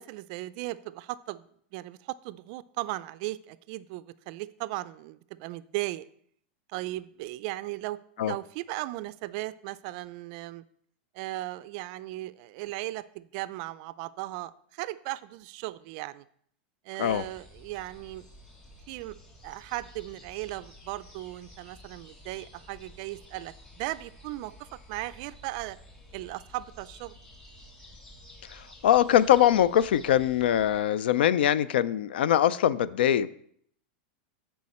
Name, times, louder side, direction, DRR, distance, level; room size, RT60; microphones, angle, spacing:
voice 1, 0.0-1.5 1.7-6.0 6.7-10.6 11.1-16.3 16.9-18.3 18.9-19.2 19.4-25.8 26.1-27.2, right 17 dB, 45° right, 16 dB, 0.3 m, -37 dB
sound 1, 17.0-30.8, left 1 dB, 15° left, 1.7 m, -52 dB
voice 2, 28.5-33.3, left 11 dB, 85° left, 18 dB, 0.4 m, -22 dB
10.5 x 4.6 x 4.2 m, 0.65 s
supercardioid pair, 155°, 5 cm